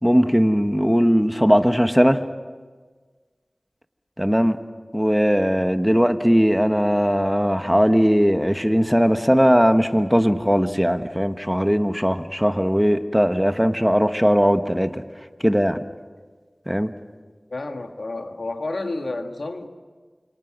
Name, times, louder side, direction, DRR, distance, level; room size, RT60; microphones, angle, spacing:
voice 1, 0.0-2.2 4.2-4.6 4.9-15.0 15.4-15.8 16.7-16.9, equal, ahead, 8 dB, 1.3 m, -19 dB
voice 2, 17.5-19.7, left 2 dB, 85° left, 5 dB, 1.8 m, -30 dB
29.5 x 27.0 x 6.1 m, 1.5 s
wide cardioid pair, 40°, 0 cm